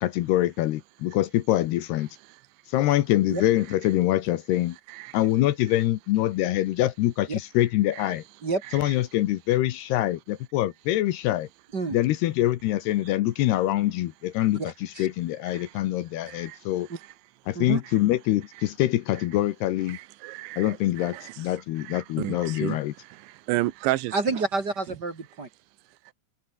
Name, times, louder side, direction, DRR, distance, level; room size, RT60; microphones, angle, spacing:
voice 1, 0.0-2.1 2.7-4.8 5.1-8.2 8.7-11.5 11.9-16.9 17.5-20.0 20.6-22.9, left 15 dB, 70° left, 2.8 m, -25 dB
voice 2, 14.6-15.1 17.5-17.8 24.1-25.5, right 3 dB, 35° right, 1.7 m, -28 dB
voice 3, 16.3-16.6 17.8-17.9 19.9-21.5 21.8-24.1, right 18 dB, 90° right, 3.1 m, -32 dB
omnidirectional pair, 5.3 m